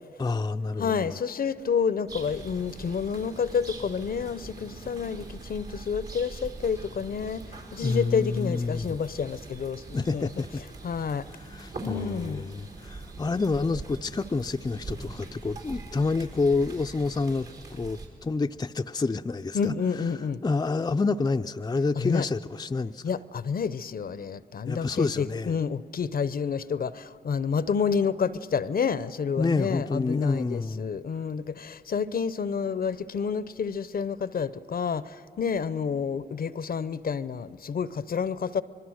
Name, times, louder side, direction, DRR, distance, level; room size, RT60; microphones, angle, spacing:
voice 1, 0.2-1.2 7.8-9.0 9.9-10.6 11.4-19.7 20.4-23.0 24.7-25.6 29.4-30.9, left 3 dB, 20° left, 0.5 m, -28 dB
voice 2, 0.8-10.3 10.8-11.3 11.8-12.5 19.5-20.4 22.0-22.3 23.0-38.6, left 6 dB, 60° left, 0.7 m, -29 dB
sound 1, 2.1-18.1, right 3 dB, 65° right, 4.4 m, -42 dB
25.0 x 21.5 x 6.4 m
cardioid pair, 50°, 18 cm